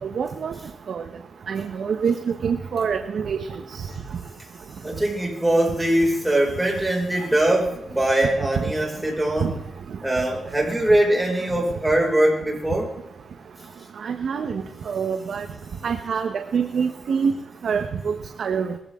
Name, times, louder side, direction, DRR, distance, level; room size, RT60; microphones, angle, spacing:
voice 1, 0.0-0.5 0.9-1.0 1.5-3.5 9.4-9.5 14.0-15.4 15.8-17.3 17.6-18.7, right 6 dB, 70° right, 6 dB, 1.2 m, -25 dB
voice 2, 4.8-9.6 10.0-12.9, right 1 dB, 10° right, -2 dB, 5.9 m, -22 dB
21.0 x 15.5 x 3.8 m, 0.84 s
cardioid pair, 105°, 0 cm